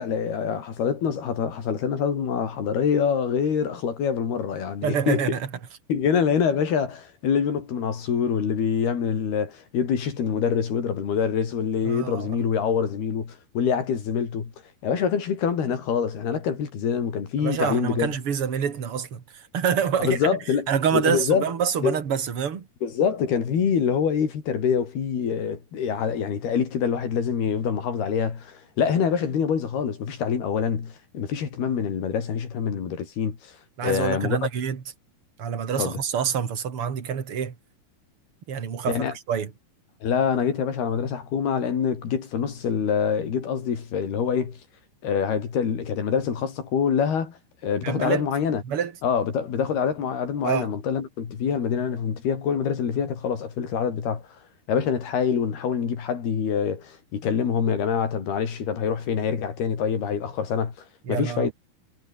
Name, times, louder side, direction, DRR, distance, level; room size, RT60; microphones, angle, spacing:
voice 1, 0.0-5.3 5.9-14.5 14.8-18.1 20.0-21.5 21.8-22.0 22.8-33.5 33.8-34.4 35.8-36.0 38.9-39.1 40.0-44.6 45.0-48.6 49.0-54.2 54.7-60.7 61.1-61.5, left 7 dB, 70° left, 5.7 m, -25 dB
voice 2, 4.8-5.5 11.8-12.3 17.4-20.2 20.7-22.7 33.8-34.8 35.4-37.5 38.5-39.5 47.8-48.2 48.6-48.9 50.4-50.7 61.1-61.5, right 7 dB, 40° right, 3.0 m, -26 dB
omnidirectional pair, 4.7 m